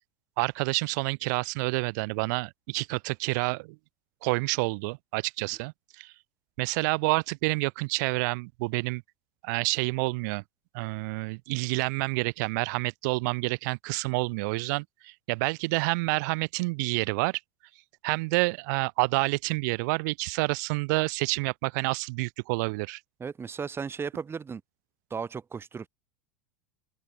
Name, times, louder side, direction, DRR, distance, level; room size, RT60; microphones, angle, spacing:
voice 1, 0.4-3.8 4.2-6.1 6.6-9.0 9.4-10.4 10.7-17.4 18.0-23.0, right 27 dB, 60° right, 1.7 m, -28 dB
voice 2, 23.2-24.6 25.1-25.9, right 6 dB, 20° right, 2.2 m, -35 dB
open air
hypercardioid pair, 85°, 11 cm